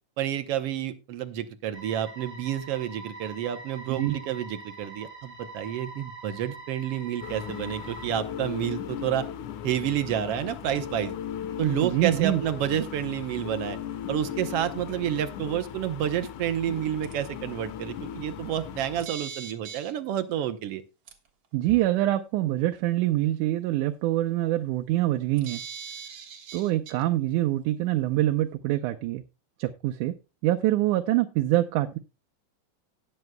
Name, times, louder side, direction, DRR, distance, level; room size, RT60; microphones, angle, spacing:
voice 1, 0.2-9.3 9.6-11.1 11.6-13.8 14.1-20.8, right 11 dB, 70° right, 9 dB, 1.5 m, -29 dB
sound 1, 1.7-8.1, right 3 dB, 10° right, 2.8 m, -44 dB
sound 2, 7.2-19.0, left 9 dB, 90° left, 2.4 m, -37 dB
voice 2, 11.8-12.4 21.5-25.6 26.5-29.2 29.6-30.1 30.4-32.0, right 15 dB, 85° right, 6 dB, 2.2 m, -25 dB
sound 3, 17.0-17.1 19.0-19.9 21.1-21.2 25.4-27.0, right 7 dB, 50° right, 2.0 m, -40 dB
18.5 x 7.9 x 2.2 m, 0.28 s
omnidirectional pair, 3.5 m